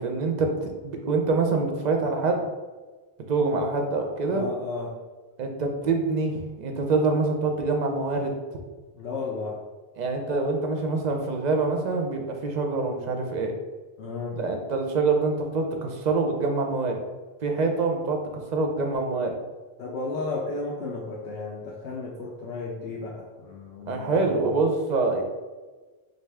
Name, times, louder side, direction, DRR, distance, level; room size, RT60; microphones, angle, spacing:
voice 1, 0.0-2.4 3.3-4.4 5.4-8.3 10.0-13.5 14.3-17.0 17.4-19.3 23.9-25.2, right 3 dB, 55° right, 3 dB, 0.6 m, -25 dB
voice 2, 4.3-4.9 8.9-9.6 14.0-14.4 19.8-24.7, left 3 dB, 75° left, -3 dB, 0.8 m, -33 dB
3.5 x 2.6 x 3.3 m, 1.3 s
omnidirectional pair, 1.0 m